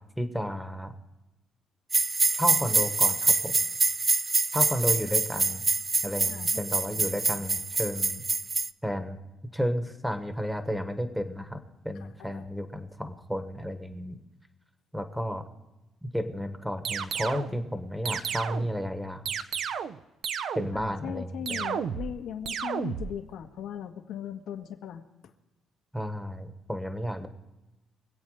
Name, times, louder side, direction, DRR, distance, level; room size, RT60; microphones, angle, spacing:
voice 1, 0.2-0.9 2.3-3.5 4.5-5.6 6.0-8.2 8.8-9.2 9.5-11.6 11.8-14.2 14.9-15.4 16.0-19.3 20.5-21.6 25.9-27.3, equal, ahead, 8 dB, 1.2 m, -32 dB
sound 1, 1.9-8.7, right 3 dB, 20° right, 0.4 m, -26 dB
voice 2, 6.2-7.4 12.0-12.5 20.7-25.3, left 9 dB, 75° left, 4 dB, 1.5 m, -39 dB
Laser shots, 16.9-17.5 18.1-18.8 19.3-20.0 20.2-20.9 21.5-22.2 22.5-23.1, right 7 dB, 60° right, 0.7 m, -32 dB
24.5 x 8.5 x 4.8 m, 1.0 s
cardioid pair, 135°, 0 cm